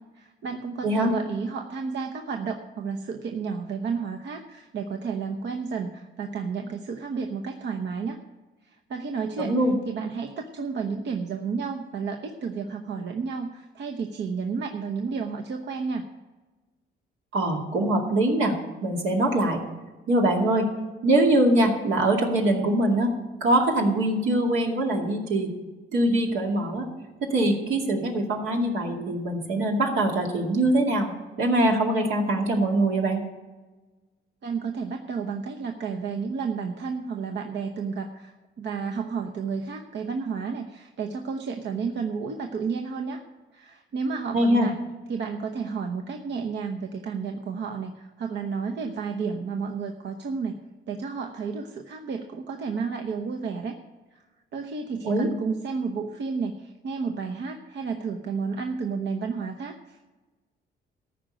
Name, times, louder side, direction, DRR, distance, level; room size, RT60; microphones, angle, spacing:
voice 1, 0.1-8.2 8.6-9.6 9.9-16.0 34.4-43.2 43.5-44.7 45.1-50.6 50.9-53.8 54.1-54.2 54.5-60.0, right 5 dB, 65° right, 3 dB, 0.9 m, -31 dB
voice 2, 9.4-9.8 17.3-18.6 18.8-19.6 20.1-20.7 21.0-23.1 23.4-25.5 25.9-26.9 27.3-33.2 44.3-44.7 55.0-55.3, right 1 dB, 80° right, 0 dB, 2.3 m, -23 dB
14.0 x 5.2 x 8.9 m, 1.2 s
cardioid pair, 90°, 20 cm